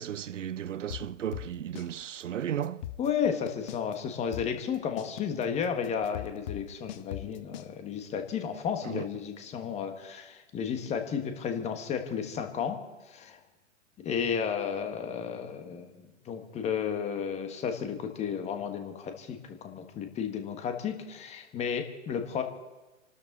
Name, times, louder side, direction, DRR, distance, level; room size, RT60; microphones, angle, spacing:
voice 1, 0.0-2.8 8.8-9.1, right 10 dB, 75° right, 0.5 m, -35 dB
sound 1, 0.9-1.9 2.2-2.3 2.6-3.9 4.3-7.7, left 13 dB, 35° left, 0.8 m, -39 dB
voice 2, 3.0-12.8 13.1-13.4 14.0-22.4, left 7 dB, 15° left, 1.6 m, -33 dB
28.0 x 12.5 x 4.1 m
figure-of-eight pair, 120°, 38 cm